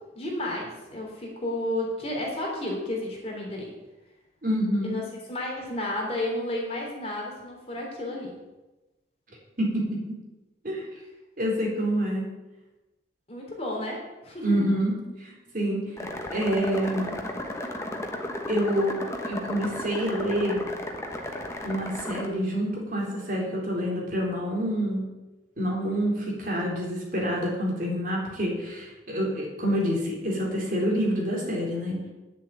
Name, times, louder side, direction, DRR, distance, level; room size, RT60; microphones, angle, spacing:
voice 1, 0.2-3.7 4.8-5.0 5.3-8.4 13.3-14.8, left 1 dB, 30° left, -2 dB, 3.3 m, -32 dB
voice 2, 4.4-5.0 9.6-10.0 10.6-10.9 11.4-12.3 14.4-17.1 18.5-20.6 21.6-25.0 25.6-32.1, equal, 45° right, -2 dB, 3.9 m, -27 dB
sound 1, 16.0-22.3, left 1 dB, 15° left, 1.2 m, -34 dB
9.7 x 7.4 x 9.3 m, 1.1 s
head